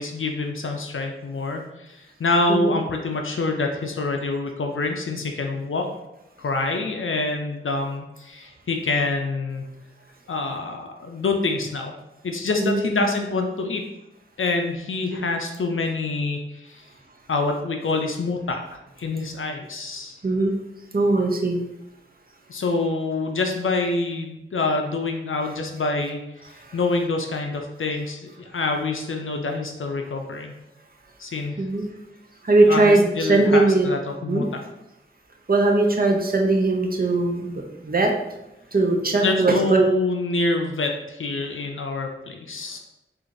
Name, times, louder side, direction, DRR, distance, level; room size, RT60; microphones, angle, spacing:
voice 1, 0.0-5.9 6.4-9.7 10.3-12.0 12.2-13.8 14.4-16.8 17.3-20.2 22.5-26.2 26.7-30.5 31.2-31.6 32.6-34.4 39.2-42.8, left 3 dB, 75° left, 3 dB, 0.4 m, -26 dB
voice 2, 12.5-13.0 15.1-15.3 20.2-20.5 20.9-21.6 26.6-26.8 31.6-31.9 32.4-33.9 34.3-34.4 35.5-38.1 38.7-39.9, right 2 dB, 45° right, 1 dB, 0.6 m, -20 dB
4.6 x 2.5 x 2.6 m, 0.93 s
wide cardioid pair, 40°, 21 cm